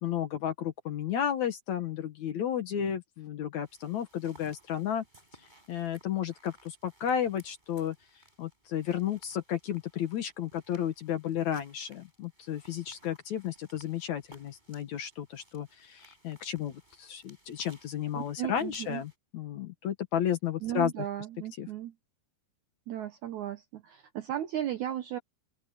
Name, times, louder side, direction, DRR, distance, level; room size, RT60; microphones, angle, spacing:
voice 1, 0.0-5.0 5.7-8.0 8.4-21.1 21.6-21.7, left 9 dB, 60° left, 2.2 m, -33 dB
sound 1, 3.6-19.2, right 1 dB, 10° right, 7.6 m, -60 dB
voice 2, 18.2-19.0 20.6-21.9 22.9-25.2, right 12 dB, 75° right, 1.8 m, -35 dB
open air
omnidirectional pair, 4.4 m